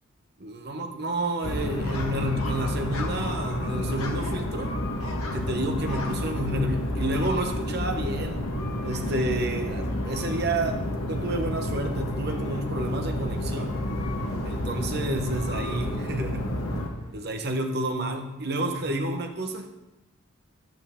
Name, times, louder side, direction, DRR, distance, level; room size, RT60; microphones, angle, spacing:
voice 1, 0.4-4.8 5.3-8.5 8.8-10.8 11.1-13.8 14.4-16.6 17.1-19.8, right 1 dB, 50° right, 4 dB, 1.1 m, -30 dB
sound 1, 1.4-16.9, left 1 dB, 90° left, 1.5 m, -30 dB
Car, 12.1-17.6, left 1 dB, 50° left, 2.5 m, -48 dB
11.0 x 9.0 x 3.7 m, 1.0 s
head